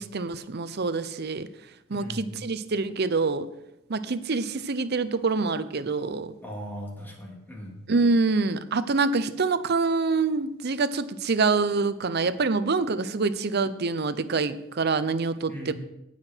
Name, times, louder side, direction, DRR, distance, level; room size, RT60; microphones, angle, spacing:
voice 1, 0.0-1.5 1.9-3.5 3.9-6.3 7.9-15.7, right 4 dB, 55° right, 13 dB, 0.7 m, -26 dB
voice 2, 1.9-2.4 6.4-7.8 15.5-15.7, equal, 10° left, -2 dB, 2.7 m, -39 dB
17.5 x 5.9 x 4.5 m, 0.88 s
head